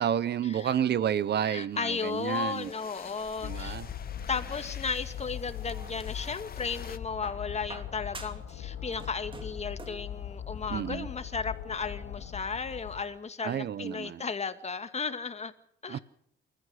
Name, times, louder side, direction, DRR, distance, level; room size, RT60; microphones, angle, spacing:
voice 1, 0.0-2.7 3.4-3.9 10.7-11.1 13.4-14.3 15.9-16.0, right 9 dB, 55° right, 0.9 m, -30 dB
voice 2, 1.4-3.8 4.3-15.5 15.8-16.0, left 5 dB, 35° left, 2.3 m, -34 dB
sound 1, 1.7-7.0, left 7 dB, 50° left, 2.1 m, -48 dB
sound 2, 3.4-13.0, left 9 dB, 80° left, 4.1 m, -40 dB
sound 3, 5.4-6.4 7.2-8.6 8.8-10.1 11.2-11.3, right 3 dB, 25° right, 2.8 m, -47 dB
28.5 x 14.5 x 6.6 m
cardioid pair, 90°, 20 cm